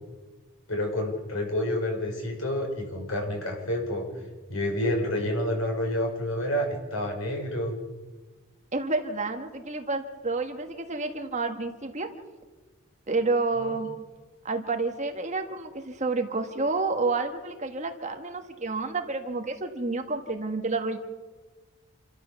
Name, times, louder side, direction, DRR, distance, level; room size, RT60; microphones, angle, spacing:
voice 1, 0.7-4.1 4.5-7.8 13.6-13.7, left 1 dB, 70° left, 1 dB, 5.9 m, -29 dB
voice 2, 8.7-12.1 13.1-13.9 14.4-21.0, right 3 dB, 30° right, 6 dB, 1.5 m, -29 dB
28.0 x 13.5 x 7.0 m, 1.3 s
head